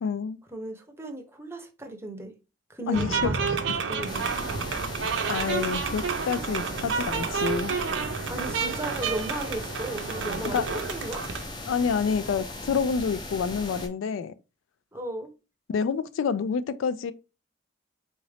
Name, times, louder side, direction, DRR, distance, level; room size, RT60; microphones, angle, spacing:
voice 1, 0.0-0.4 2.9-3.3 4.7-4.8 5.3-7.8 10.5-10.7 11.7-14.3 15.7-17.1, left 6 dB, 85° left, 0.3 m, -28 dB
voice 2, 0.5-2.3 2.7-3.6 3.9-4.3 8.3-11.2 14.9-15.3, right 1 dB, 15° right, 0.7 m, -36 dB
sound 1, 2.9-11.5, right 5 dB, 70° right, 0.5 m, -30 dB
sound 2, 4.1-13.9, left 2 dB, 25° left, 0.6 m, -38 dB
3.9 x 2.5 x 3.2 m
head